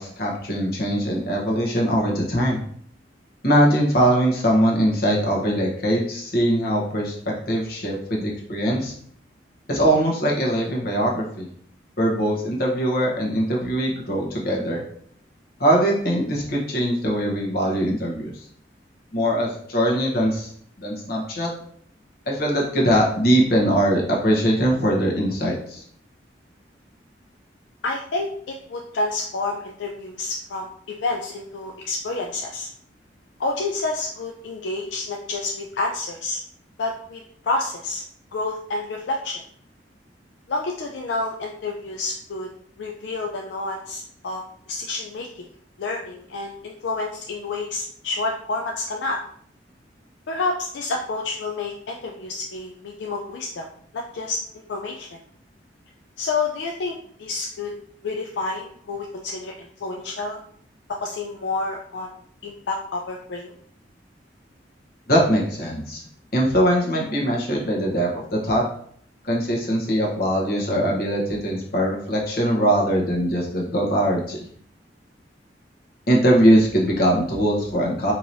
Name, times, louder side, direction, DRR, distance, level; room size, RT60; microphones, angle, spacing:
voice 1, 0.0-2.6 3.4-7.1 7.5-8.9 9.7-11.5 12.0-14.8 15.6-18.3 19.1-20.5 20.8-21.5 22.3-25.8 65.1-66.0 66.3-68.7 69.3-74.4 76.1-78.1, equal, 55° left, -2 dB, 1.0 m, -21 dB
voice 2, 27.8-32.7 33.4-36.4 36.8-38.0 38.3-39.4 40.5-42.5 42.8-45.3 45.8-49.2 50.3-53.7 53.9-54.4 54.7-55.2 56.2-57.7 58.0-59.5 59.8-60.4 61.0-63.5, left 3 dB, 75° left, 1 dB, 0.4 m, -29 dB
4.5 x 2.9 x 2.7 m, 0.62 s
head